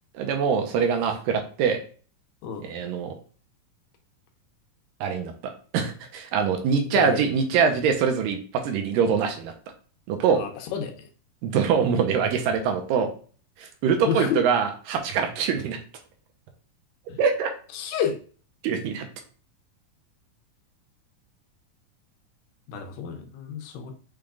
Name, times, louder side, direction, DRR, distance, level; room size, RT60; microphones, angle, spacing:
voice 1, 0.1-1.8 2.6-3.2 5.0-9.5 10.1-10.4 11.4-13.1 13.6-15.8 17.2-17.5 18.6-19.1, right 6 dB, 80° right, 5 dB, 2.3 m, -24 dB
voice 2, 10.3-11.1 14.1-14.4 17.1-17.2 17.7-18.2 22.7-23.9, left 8 dB, 85° left, 4 dB, 2.4 m, -30 dB
6.3 x 3.6 x 2.3 m, 0.40 s
omnidirectional pair, 4.0 m